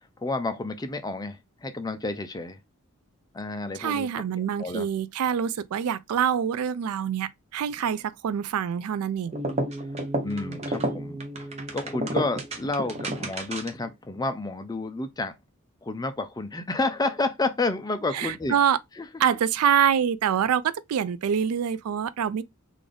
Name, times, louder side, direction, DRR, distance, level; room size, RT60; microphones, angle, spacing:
voice 1, 0.2-2.6 3.3-4.1 4.4-4.9 10.2-11.2 11.7-15.4 15.8-18.6 19.0-19.1, left 2 dB, 15° left, 0.5 m, -30 dB
voice 2, 3.8-9.3 18.1-18.8 19.2-22.4, right 8 dB, 85° right, 0.3 m, -25 dB
sound 1, 9.3-13.9, right 1 dB, 30° right, 0.7 m, -31 dB
3.8 x 2.5 x 3.3 m
head